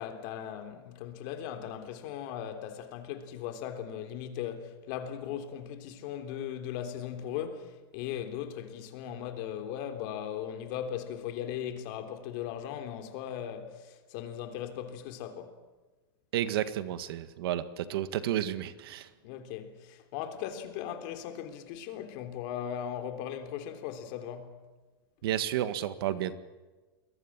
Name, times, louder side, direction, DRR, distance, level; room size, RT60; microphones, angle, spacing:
voice 1, 0.0-15.6 19.2-24.5, left 9 dB, 50° left, 3.6 m, -38 dB
voice 2, 16.3-19.1 25.2-26.3, right 12 dB, 70° right, 1.8 m, -31 dB
29.0 x 22.0 x 7.5 m
supercardioid pair, 145°, 13 cm